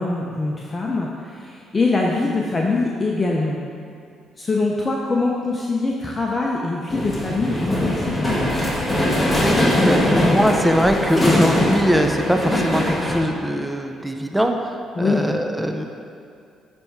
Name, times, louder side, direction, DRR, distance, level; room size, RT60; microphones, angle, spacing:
voice 1, 0.0-3.6 4.4-8.3 15.0-15.3, left 3 dB, 30° left, -2 dB, 0.8 m, -23 dB
sound 1, 6.9-13.2, left 1 dB, 10° left, 1.6 m, -21 dB
voice 2, 9.1-15.8, equal, 5° right, 4 dB, 0.6 m, -22 dB
9.6 x 3.6 x 4.6 m, 2.4 s
supercardioid pair, 75°, 0 cm